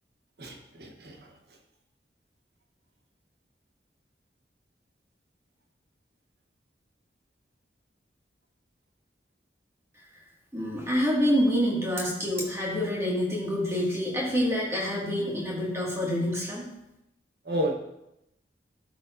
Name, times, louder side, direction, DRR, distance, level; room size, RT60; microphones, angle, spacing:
voice 1, 0.4-1.3 17.4-17.7, equal, 65° right, 3 dB, 1.1 m, -31 dB
voice 2, 10.5-16.7, equal, 15° right, -5 dB, 2.0 m, -27 dB
12.0 x 4.8 x 2.6 m, 0.86 s
head